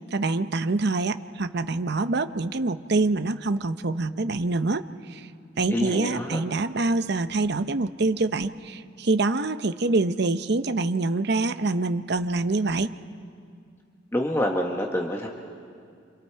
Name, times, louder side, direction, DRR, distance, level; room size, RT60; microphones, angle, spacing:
voice 1, 0.1-5.3 5.6-12.9, right 3 dB, 55° right, 10 dB, 0.7 m, -25 dB
voice 2, 5.7-6.4 14.1-15.3, left 1 dB, 15° left, 0 dB, 1.3 m, -27 dB
28.5 x 27.0 x 4.7 m, 2.3 s
head